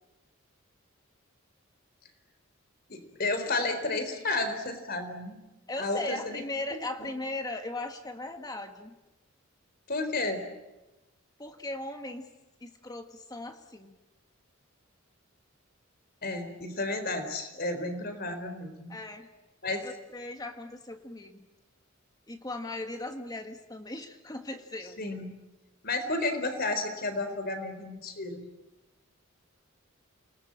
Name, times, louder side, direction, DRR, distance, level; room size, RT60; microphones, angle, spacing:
voice 1, 2.9-5.4 5.8-6.4 6.7-7.1 9.9-10.4 16.2-19.0 19.6-19.8 25.0-25.4 25.8-28.5, left 2 dB, 50° left, 8 dB, 4.0 m, -32 dB
voice 2, 5.7-8.9 11.4-12.3 12.6-14.0 18.9-19.3 19.8-21.5 22.3-25.0, left 2 dB, 20° left, 6 dB, 1.5 m, -38 dB
29.0 x 20.0 x 8.8 m, 1.1 s
head